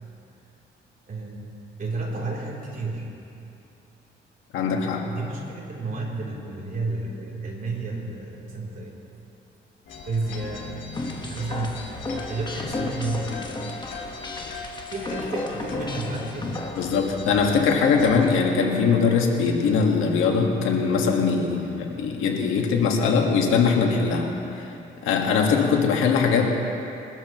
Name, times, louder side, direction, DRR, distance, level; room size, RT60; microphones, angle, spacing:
voice 1, 1.1-3.1 5.0-8.9 10.1-13.5 14.9-16.6, right 3 dB, 45° right, -3 dB, 3.5 m, -32 dB
voice 2, 4.5-5.1 16.8-24.6 25.0-26.5, left 5 dB, 90° left, 1 dB, 1.8 m, -21 dB
sound 1, 9.9-18.4, left 4 dB, 70° left, 2.4 m, -39 dB
sound 2, 10.9-16.9, left 2 dB, 25° left, 1.5 m, -33 dB
22.5 x 13.0 x 3.1 m, 2.9 s
cardioid pair, 90°, 20 cm